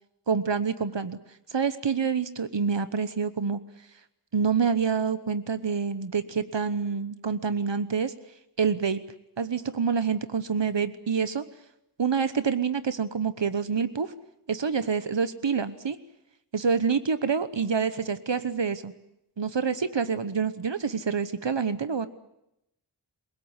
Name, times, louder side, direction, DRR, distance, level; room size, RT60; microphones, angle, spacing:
voice 1, 0.3-1.2 1.5-3.6 4.3-8.1 8.6-9.0 9.4-11.4 12.0-14.1 14.5-16.0 16.5-18.9 19.4-22.1, right 6 dB, 85° right, 12 dB, 1.1 m, -27 dB
28.0 x 17.5 x 9.8 m, 0.83 s
wide cardioid pair, 45°, 42 cm